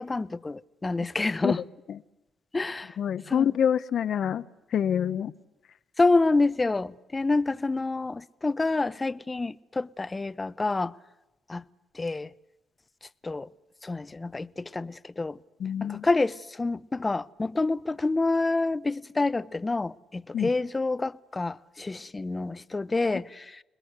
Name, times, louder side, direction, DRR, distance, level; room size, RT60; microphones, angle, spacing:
voice 1, 0.0-1.6 2.5-3.0 3.3-3.5 6.0-10.9 11.5-11.6 11.9-12.3 13.2-13.5 13.8-15.4 15.8-23.6, left 3 dB, 20° left, 0.8 m, -28 dB
voice 2, 3.0-4.4 4.7-5.3 15.6-16.1 20.3-20.5, left 8 dB, 60° left, 0.9 m, -26 dB
28.5 x 20.5 x 8.1 m
cardioid pair, 90°, 0 cm